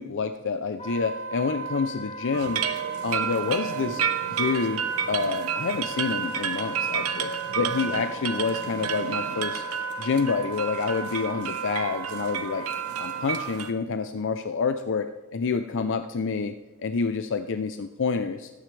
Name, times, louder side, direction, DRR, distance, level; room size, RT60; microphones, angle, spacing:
voice 1, 0.0-2.6 3.0-4.0 4.4-4.8 5.1-9.6 10.0-12.7 13.0-15.1 15.3-16.5 16.8-18.5, left 5 dB, 60° left, 9 dB, 0.5 m, -28 dB
Wind instrument woodwind instrument, 0.8-13.5, right 5 dB, 30° left, 1.9 m, -37 dB
sound 1, 2.3-13.7, right 7 dB, 80° right, 1.0 m, -31 dB
19.0 x 9.4 x 3.3 m, 1.1 s
head